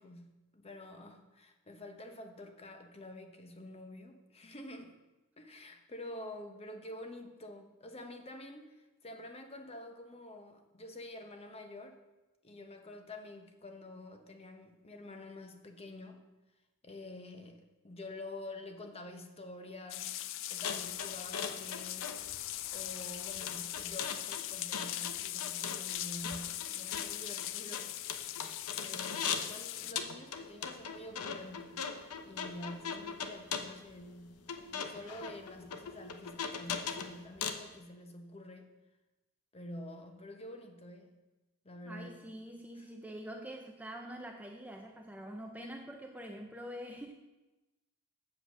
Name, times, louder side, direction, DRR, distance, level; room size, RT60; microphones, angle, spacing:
voice 1, 0.0-4.9 5.4-12.0 12.4-16.2 16.8-20.1 20.5-22.1 22.7-28.5 28.8-31.9 32.2-34.4 34.7-38.7 39.5-41.1 41.6-42.3 42.7-42.9 45.6-45.7, left 1 dB, 25° left, 5 dB, 1.0 m, -48 dB
sound 1, 19.9-29.9, left 13 dB, 60° left, 0.4 m, -40 dB
sound 2, 20.6-29.6 30.0-37.7, left 6 dB, 85° left, 0.8 m, -40 dB
voice 2, 41.9-47.1, equal, 5° right, 3 dB, 0.5 m, -45 dB
7.8 x 7.5 x 6.2 m, 1.1 s
head